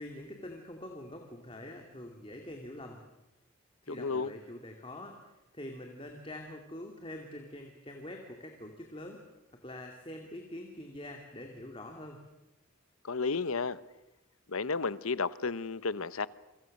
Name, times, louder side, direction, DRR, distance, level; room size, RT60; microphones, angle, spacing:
voice 1, 0.0-3.0 3.8-5.2 5.5-9.2 9.6-12.2, left 1 dB, 25° left, 2 dB, 2.4 m, -45 dB
voice 2, 3.9-4.3 13.0-13.8 14.5-16.3, left 4 dB, 80° left, 16 dB, 1.0 m, -32 dB
29.0 x 24.5 x 6.6 m, 0.94 s
head